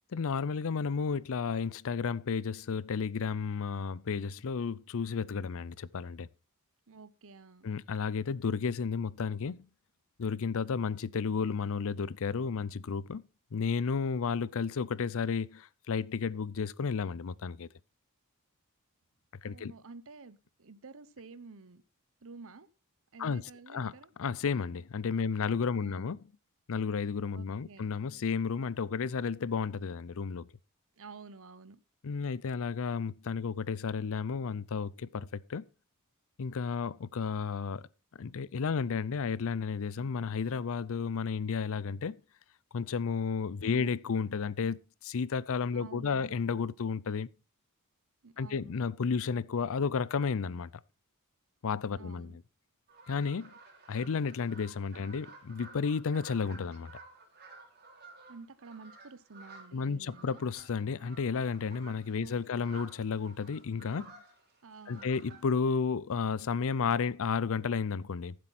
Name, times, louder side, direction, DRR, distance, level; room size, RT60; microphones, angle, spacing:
voice 1, 0.1-6.3 7.6-9.7 10.2-13.2 13.5-17.7 19.4-19.7 23.2-23.4 23.7-23.9 24.2-26.2 26.7-30.5 32.0-35.6 36.4-37.9 38.2-42.2 42.7-47.3 48.4-50.7 51.6-52.4 53.1-53.5 53.9-56.9 59.7-64.1 64.9-68.4, left 5 dB, 65° left, 0.5 m, -32 dB
voice 2, 6.9-7.7 19.4-21.8 22.2-22.7 23.1-24.1 25.2-25.3 25.7-26.1 27.3-27.9 31.0-31.8 43.6-43.9 45.7-46.3 48.2-48.8 51.9-52.4 54.9-55.1 58.3-60.4 62.2-62.4 64.6-65.1, right 4 dB, 65° right, 0.9 m, -50 dB
sound 1, 52.9-65.5, right 3 dB, 45° right, 3.5 m, -54 dB
14.0 x 7.7 x 4.2 m
head